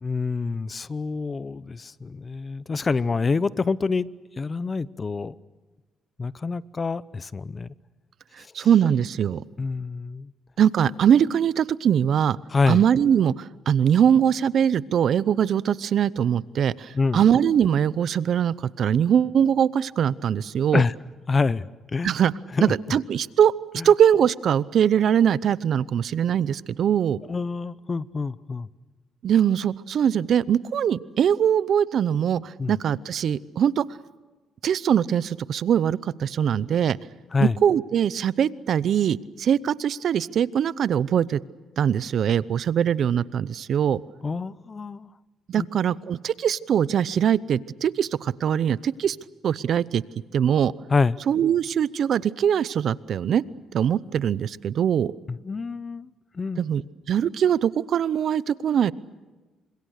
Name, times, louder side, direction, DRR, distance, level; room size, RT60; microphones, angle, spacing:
voice 1, 0.0-4.1 4.4-5.3 6.2-7.7 8.6-8.7 9.6-10.3 12.5-12.8 16.9-17.2 20.7-20.9 21.3-22.1 22.6-22.7 27.3-28.7 32.6-32.7 37.3-37.5 44.2-45.1 45.6-45.7 50.9-51.2 55.3-56.1 56.3-56.6, left 4 dB, 35° left, 18 dB, 0.8 m, -26 dB
voice 2, 8.4-9.4 10.6-12.4 12.7-20.8 22.0-22.3 22.6-23.5 23.8-27.2 29.2-33.8 34.6-37.0 37.4-41.4 41.8-44.0 45.5-49.2 49.4-50.0 50.3-50.7 51.3-53.4 53.7-55.1 56.6-56.8 57.1-58.9, right 9 dB, 65° right, 19 dB, 0.7 m, -22 dB
28.5 x 25.5 x 6.6 m, 1.3 s
cardioid pair, 90°, 0 cm